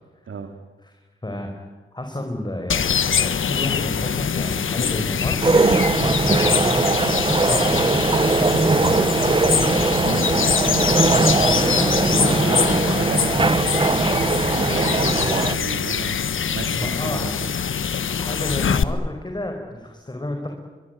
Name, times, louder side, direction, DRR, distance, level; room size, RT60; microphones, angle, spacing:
voice 1, 1.2-5.4 6.0-6.6 7.2-9.8 11.2-12.5 16.7-17.4 18.1-20.5, left 1 dB, 20° left, 3 dB, 5.1 m, -31 dB
sound 1, 2.7-18.8, left 7 dB, 70° left, 1.3 m, -23 dB
sound 2, 5.4-15.6, right 3 dB, 25° right, 0.7 m, -20 dB
voice 2, 12.1-17.5, right 5 dB, 70° right, 6 dB, 2.5 m, -34 dB
24.0 x 24.0 x 9.3 m, 1.3 s
cardioid pair, 80°, 21 cm